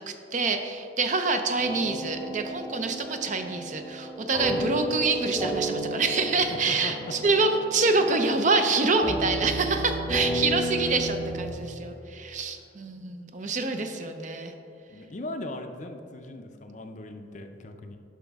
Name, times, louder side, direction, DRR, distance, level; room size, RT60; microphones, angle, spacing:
voice 1, 0.0-14.5, right 3 dB, 40° right, 6 dB, 0.5 m, -26 dB
sound 1, 1.6-11.5, right 1 dB, 15° right, 0.9 m, -32 dB
voice 2, 4.5-4.9 6.5-6.9 10.8-11.1 14.9-18.0, left 2 dB, 40° left, 6 dB, 0.5 m, -39 dB
10.0 x 5.8 x 3.5 m, 2.7 s
head